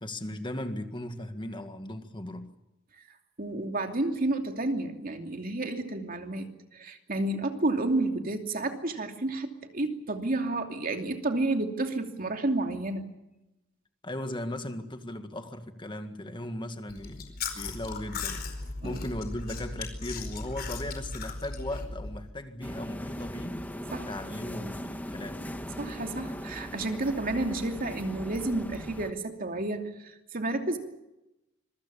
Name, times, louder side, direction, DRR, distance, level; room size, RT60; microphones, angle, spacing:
voice 1, 0.0-2.5 14.0-17.2 17.5-18.4 18.8-23.6 24.1-25.5, left 1 dB, 25° left, 1.9 m, -37 dB
voice 2, 3.4-13.1 18.8-19.0 23.9-24.1 25.8-30.8, right 2 dB, 45° right, 2.8 m, -31 dB
Chewing mastication, 16.9-22.2, left 4 dB, 50° left, 4.7 m, -37 dB
sound 1, 22.6-29.1, equal, 10° left, 1.6 m, -39 dB
26.0 x 23.0 x 7.0 m
head